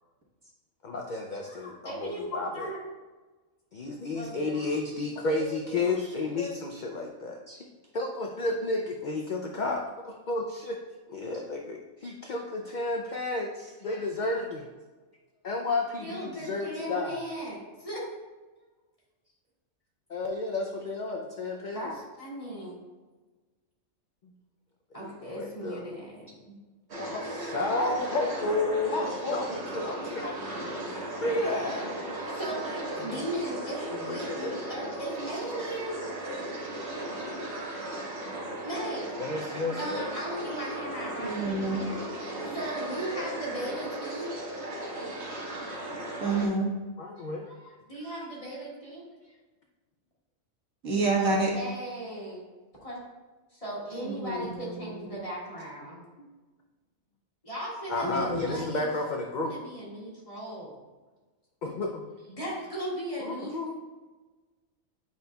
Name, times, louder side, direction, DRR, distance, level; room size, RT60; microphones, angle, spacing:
voice 1, 0.8-2.7 3.7-7.6 7.9-10.8 11.1-14.7 15.4-17.2 20.1-21.9 24.2-24.3 25.0-25.9 27.0-31.9 33.0-33.2 33.9-34.6 36.3-36.4 38.2-38.3 39.2-40.3 43.7-43.8 47.0-47.5 57.9-59.5 61.6-62.0 63.2-63.7, left 2 dB, 60° left, 2 dB, 0.5 m, -32 dB
voice 2, 1.5-2.8 4.1-4.7 16.0-18.0 21.7-22.8 24.9-26.5 32.3-36.0 38.1-39.1 39.7-44.3 47.2-49.0 51.2-52.4 52.8-53.0 53.5-56.0 57.4-58.9 59.4-60.7 62.3-63.7, right 1 dB, 25° left, -7 dB, 1.9 m, -38 dB
sound 1, 26.9-46.5, right 1 dB, 55° right, 1.5 m, -36 dB
voice 3, 41.2-41.8 46.2-46.7 50.8-51.5 53.9-55.1 58.0-58.6, right 3 dB, 70° right, -3 dB, 1.7 m, -29 dB
8.2 x 5.2 x 2.2 m, 1.3 s
omnidirectional pair, 1.4 m